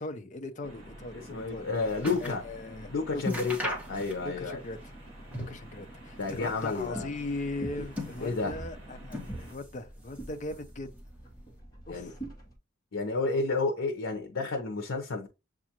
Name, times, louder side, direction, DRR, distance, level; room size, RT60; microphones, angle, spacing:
voice 1, 0.0-1.7 2.2-3.3 4.2-4.8 5.5-10.9 11.9-12.2, left 2 dB, 40° left, 0.5 m, -39 dB
sound 1, 0.6-9.5, right 1 dB, 30° right, 1.7 m, -48 dB
voice 2, 1.1-2.4 2.9-4.6 6.2-7.1 8.2-8.6 11.9-12.1 12.9-15.3, left 3 dB, 85° left, 0.7 m, -31 dB
sound 2, 1.3-2.5 2.8-2.9 3.2-4.5 4.8-5.7 6.1-7.0 7.6-8.6 9.1-9.8 10.1-10.8 11.5-11.6, left 1 dB, 5° right, 1.2 m, -38 dB
sound 3, 6.8-12.5, right 1 dB, 20° left, 1.1 m, -44 dB
7.2 x 2.4 x 2.9 m
head